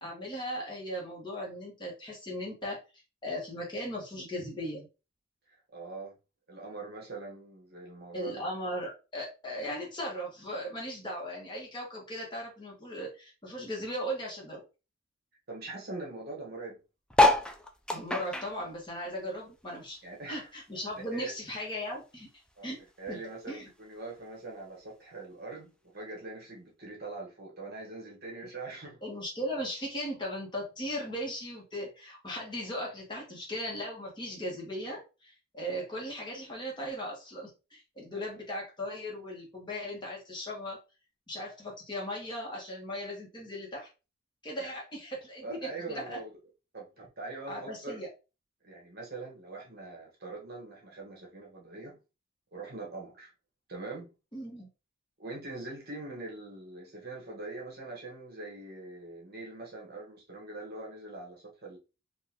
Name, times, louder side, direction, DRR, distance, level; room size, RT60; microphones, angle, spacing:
voice 1, 0.0-2.8 3.2-4.9 8.1-14.7 17.9-20.0 20.3-22.3 22.6-22.8 23.1-23.6 29.0-40.8 41.3-43.9 44.4-46.2 47.5-48.1 54.3-54.7, equal, 25° left, 1.2 m, -38 dB
voice 2, 5.5-6.1 6.5-8.4 15.5-16.8 20.0-20.5 21.1-21.3 22.6-22.7 23.0-29.0 38.1-38.3 44.6-44.7 45.4-46.3 46.7-48.0 48.6-52.0 52.5-53.3 53.7-54.1 55.2-61.8, right 3 dB, 50° right, 1.4 m, -42 dB
sound 1, 17.1-19.9 20.2-21.7 22.2-22.3 22.5-22.6 22.8-23.2 24.0-24.1, left 2 dB, 5° left, 0.4 m, -28 dB
3.9 x 2.6 x 2.9 m
head